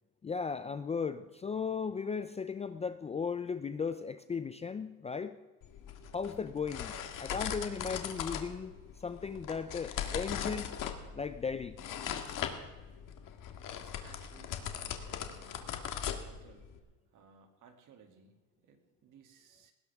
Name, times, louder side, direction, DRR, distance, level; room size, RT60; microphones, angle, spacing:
voice 1, 0.2-5.4 6.1-8.7 9.0-10.7 11.1-11.7, left 5 dB, 20° left, 11 dB, 0.4 m, -36 dB
sound 1, 5.6-16.8, left 8 dB, 60° left, 1.8 m, -40 dB
voice 2, 13.7-16.7 17.1-19.7, right 5 dB, 55° right, 4 dB, 2.6 m, -61 dB
19.5 x 16.5 x 3.5 m, 1.2 s
cardioid pair, 140°, 37 cm